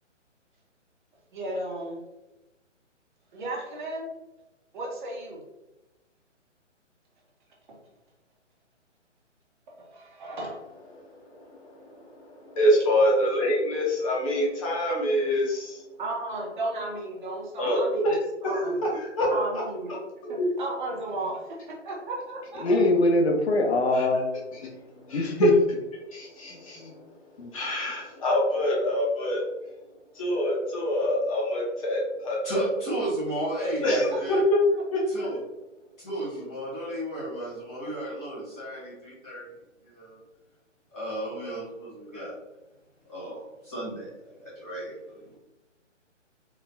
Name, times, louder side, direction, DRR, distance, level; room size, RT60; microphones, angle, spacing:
voice 1, 1.3-2.0 3.3-4.1 4.7-5.4 9.8-10.6 16.0-18.8 19.3-19.9 20.3-22.7, right 2 dB, 40° right, -2 dB, 1.1 m, -34 dB
voice 2, 11.3-15.8 17.6-18.2 18.4-18.8 19.0-19.3 19.9-20.0 20.2-20.5 22.6-22.9 23.9-24.0 25.1-25.5 26.1-26.9 27.5-29.4 30.1-32.6 33.6-34.6 34.9-35.3, equal, 25° left, -3 dB, 1.0 m, -26 dB
voice 3, 22.6-24.3 24.6-24.7 25.1-25.5 26.5-26.9 27.4-27.5, left 2 dB, 55° left, 2 dB, 0.9 m, -23 dB
voice 4, 32.4-34.4 35.1-35.4 36.0-39.5 39.8-40.2 40.9-42.4 43.1-45.3, right 1 dB, 5° left, -19 dB, 0.5 m, -34 dB
3.9 x 3.5 x 2.7 m, 1.0 s
hypercardioid pair, 155°, 38 cm